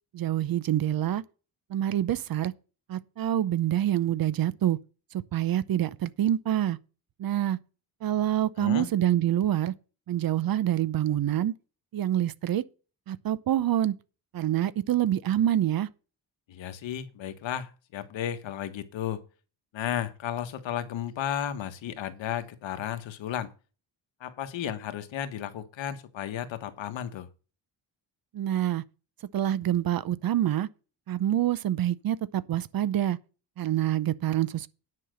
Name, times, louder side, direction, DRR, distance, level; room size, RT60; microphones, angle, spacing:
voice 1, 0.1-1.2 1.7-2.5 2.9-4.8 5.3-6.8 7.2-7.6 8.0-9.7 10.1-11.5 11.9-12.6 13.1-13.9 14.3-15.9 28.3-28.8 29.3-30.7 31.1-33.2 33.6-34.7, right 12 dB, 50° right, 0.7 m, -26 dB
voice 2, 8.6-8.9 16.5-19.2 19.7-23.5 24.2-27.3, left 10 dB, 85° left, 1.5 m, -34 dB
9.8 x 5.8 x 6.4 m
wide cardioid pair, 165°, 45 cm